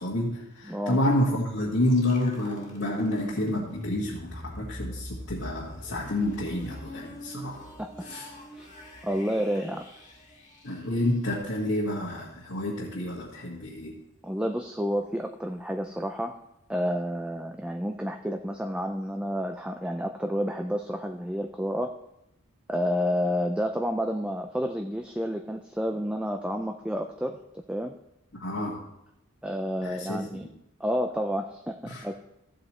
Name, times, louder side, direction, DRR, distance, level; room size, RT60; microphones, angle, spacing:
voice 1, 0.0-7.6 8.0-8.3 10.6-13.9 28.3-28.8 29.8-30.5 31.8-32.0, left 1 dB, 70° left, -6 dB, 1.8 m, -29 dB
voice 2, 0.7-1.0 7.8-7.9 8.6-8.7 9.0-9.8 14.2-16.4 16.7-21.9 22.7-27.4 27.7-28.0 29.4-30.5 30.8-31.8 32.0-32.2, equal, 5° right, 4 dB, 0.4 m, -30 dB
sound 1, 1.8-11.7, equal, 35° left, 1.8 m, -43 dB
14.5 x 7.9 x 3.2 m, 0.84 s
head